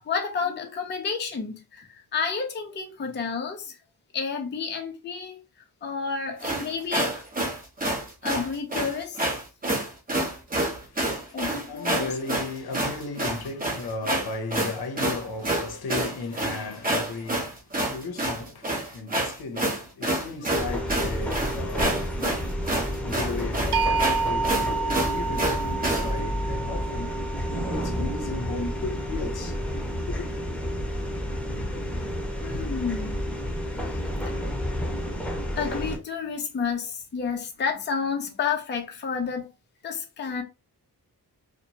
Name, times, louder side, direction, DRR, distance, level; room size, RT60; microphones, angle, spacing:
voice 1, 0.0-3.8 4.1-5.4 5.8-7.2 8.2-9.3 10.1-10.4 11.3-12.2 32.4-33.2 33.9-34.0 34.3-34.4 35.6-39.5 39.8-40.4, left 5 dB, 30° left, 0.5 m, -30 dB
sound 1, 6.4-26.1, right 1 dB, 25° right, 0.7 m, -28 dB
voice 2, 10.8-27.1 27.5-29.6 30.1-30.3, left 3 dB, 70° left, 0.7 m, -36 dB
sound 2, 20.6-36.0, equal, 5° left, 0.9 m, -30 dB
sound 3, 23.7-29.7, right 4 dB, 90° right, 0.6 m, -30 dB
2.8 x 2.1 x 2.7 m
wide cardioid pair, 145°, 38 cm